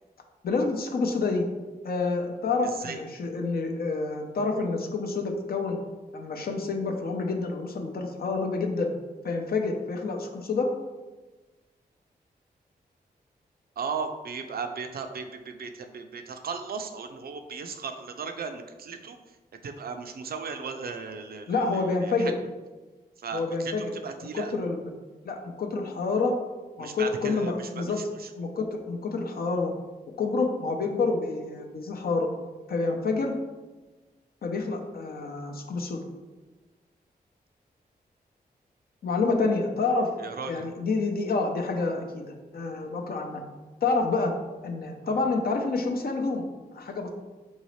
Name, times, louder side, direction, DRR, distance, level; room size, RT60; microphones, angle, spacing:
voice 1, 0.4-1.4 1.8-5.8 6.1-8.9 9.2-10.7 21.5-22.3 23.3-23.9 24.3-24.8 25.2-26.4 26.8-28.0 28.4-29.7 30.2-32.3 32.7-33.3 34.4-36.0 39.0-40.1 40.5-43.4 43.8-44.4 44.6-47.1, left 3 dB, 65° left, 3 dB, 0.6 m, -28 dB
voice 2, 13.8-19.2 19.6-22.3 23.2-23.7 24.0-24.5 26.8-28.3 40.2-40.6 45.0-45.2, right 5 dB, 65° right, 7 dB, 0.4 m, -36 dB
3.9 x 2.7 x 3.1 m, 1.2 s
cardioid pair, 50°, 17 cm